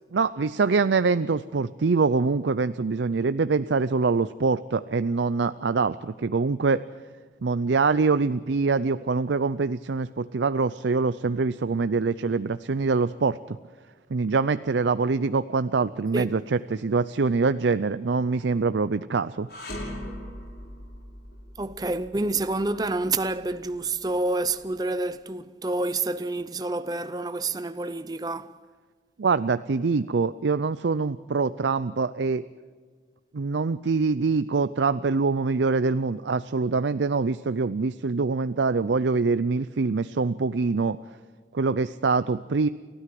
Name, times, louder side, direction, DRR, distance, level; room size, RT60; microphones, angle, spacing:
voice 1, 0.1-6.8 7.4-13.6 14.1-19.5 29.2-32.4 33.3-41.0 41.5-42.7, right 4 dB, 85° right, 0.5 m, -24 dB
sound 1, 19.5-24.7, left 1 dB, 65° left, 5.9 m, -41 dB
voice 2, 21.6-28.6, right 2 dB, 20° right, 0.6 m, -28 dB
30.0 x 13.0 x 7.6 m
head